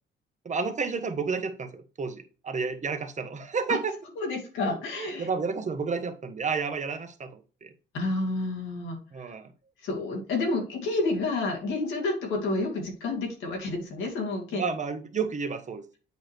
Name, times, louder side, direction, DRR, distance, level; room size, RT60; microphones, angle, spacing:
voice 1, 0.4-3.9 4.7-7.7 9.1-9.5 14.5-15.9, right 5 dB, 35° right, 8 dB, 1.2 m, -31 dB
voice 2, 4.2-5.3 7.9-9.3 9.8-14.7, left 2 dB, 90° left, 1 dB, 2.4 m, -30 dB
8.2 x 4.9 x 3.1 m, 0.36 s
cardioid pair, 90°, 20 cm